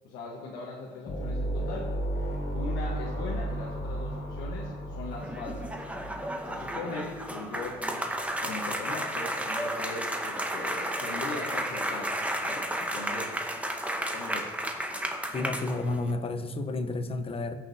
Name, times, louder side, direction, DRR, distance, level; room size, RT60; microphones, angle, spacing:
voice 1, 0.0-1.9 2.5-5.8 6.4-8.1 8.4-13.3 14.1-14.5, left 3 dB, 85° left, -4 dB, 1.2 m, -39 dB
sound 1, 1.1-7.5, right 1 dB, 65° left, 2.2 m, -34 dB
sound 2, 5.1-16.1, right 1 dB, 10° right, 0.9 m, -33 dB
voice 2, 15.3-17.5, left 2 dB, 35° left, 8 dB, 0.8 m, -31 dB
15.5 x 6.2 x 2.7 m, 1.5 s
cardioid pair, 110°, 17 cm